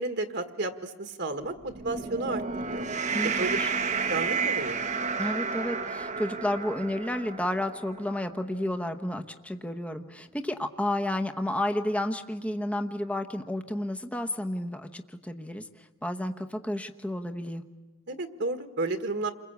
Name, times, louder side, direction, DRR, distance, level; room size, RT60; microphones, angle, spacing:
voice 1, 0.0-2.4 2.7-2.9 3.2-3.6 4.1-4.8 18.1-19.3, right 2 dB, 55° right, 7 dB, 1.6 m, -32 dB
sound 1, 1.6-8.2, right 5 dB, 35° right, 1.0 m, -31 dB
voice 2, 3.1-3.7 5.2-17.6, left 1 dB, 5° left, 6 dB, 1.0 m, -31 dB
29.0 x 22.0 x 8.3 m, 1.2 s
head